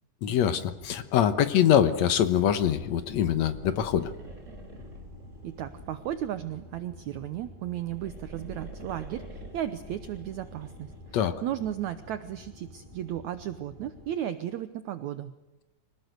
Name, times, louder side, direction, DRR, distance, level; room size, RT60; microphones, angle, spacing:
voice 1, 0.2-4.1 11.1-11.3, left 9 dB, 65° left, 12 dB, 2.0 m, -24 dB
sound 1, 0.5-14.2, left 1 dB, 15° left, 3.9 m, -50 dB
sound 2, 2.2-6.6 7.6-11.2, right 1 dB, 20° right, 5.2 m, -47 dB
voice 2, 5.4-15.3, right 11 dB, 70° right, 12 dB, 2.0 m, -35 dB
26.0 x 18.5 x 8.1 m, 1.1 s
omnidirectional pair, 4.0 m